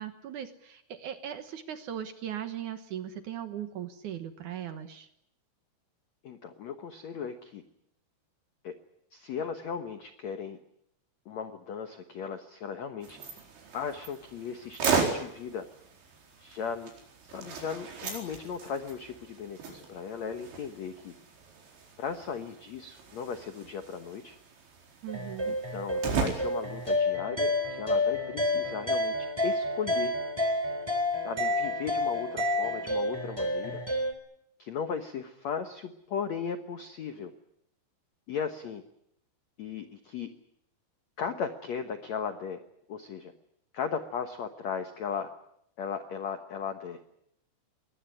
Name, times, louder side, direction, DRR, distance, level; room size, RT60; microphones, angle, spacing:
voice 1, 0.0-5.1 25.0-25.6, right 10 dB, 65° right, 9 dB, 2.0 m, -38 dB
voice 2, 6.2-7.6 8.6-8.8 9.1-10.6 11.2-13.2 13.7-15.7 16.4-16.9 17.2-21.1 22.0-24.4 25.5-30.1 31.2-33.8 34.6-37.3 38.3-38.8 39.6-40.3 41.2-42.6 42.9-43.3 43.7-45.3 45.8-47.0, left 6 dB, 75° left, 8 dB, 1.6 m, -36 dB
sound 1, 13.0-27.0, right 5 dB, 90° right, 6.8 m, -37 dB
sound 2, 25.1-34.1, left 1 dB, 10° right, 2.3 m, -29 dB
23.0 x 20.0 x 9.8 m, 0.76 s
omnidirectional pair, 5.1 m